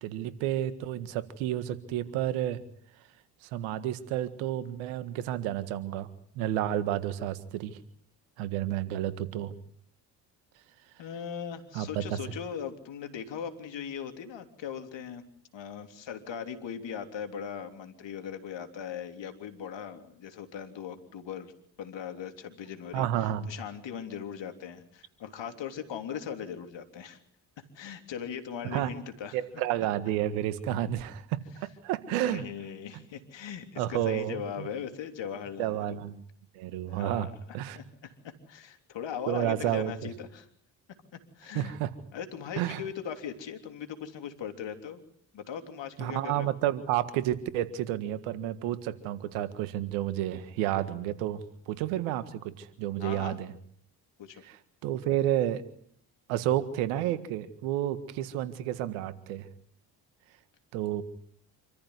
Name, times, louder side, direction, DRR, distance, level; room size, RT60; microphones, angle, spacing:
voice 1, 0.0-2.6 3.4-6.1 6.4-7.8 8.4-9.5 11.7-12.0 22.9-23.5 28.7-28.9 29.3-32.4 33.8-34.7 35.6-36.1 36.5-37.3 37.5-37.8 39.3-39.9 41.6-41.9 42.6-42.8 46.0-51.4 51.7-53.5 54.8-55.6 56.3-59.5 60.7-61.0, right 12 dB, 85° right, 12 dB, 1.8 m, -30 dB
voice 2, 11.0-15.2 15.5-21.5 21.8-27.2 27.6-29.4 32.0-36.0 36.9-40.5 41.1-41.7 42.1-45.0 45.3-46.5 53.0-53.4 54.2-54.4, left 8 dB, 65° left, 6 dB, 3.4 m, -39 dB
27.0 x 14.5 x 9.7 m, 0.65 s
hypercardioid pair, 50°, 48 cm